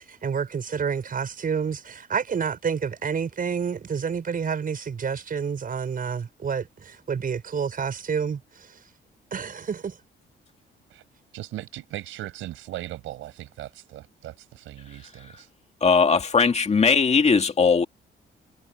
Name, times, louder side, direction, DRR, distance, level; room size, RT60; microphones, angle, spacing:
voice 1, 0.0-8.7 9.3-10.0, right 6 dB, 45° right, 5.9 m, -29 dB
voice 2, 11.3-15.5, right 15 dB, 90° right, 6.1 m, -38 dB
voice 3, 15.8-17.9, left 5 dB, 35° left, 2.2 m, -19 dB
cardioid pair, 90°, 20 cm